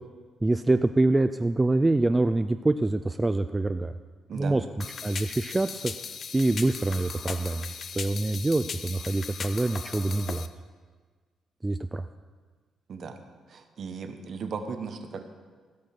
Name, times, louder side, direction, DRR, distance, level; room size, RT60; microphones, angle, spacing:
voice 1, 0.4-3.9 4.3-4.6 5.0-5.9 6.3-10.5 11.6-12.1, right 2 dB, 15° right, 9 dB, 0.3 m, -25 dB
voice 2, 4.3-4.6 12.9-13.2 13.5-15.2, right 5 dB, 55° right, 7 dB, 1.0 m, -36 dB
sound 1, 4.8-10.5, left 6 dB, 50° left, 0.5 m, -38 dB
15.5 x 5.4 x 5.9 m, 1.5 s
cardioid pair, 95°, 0 cm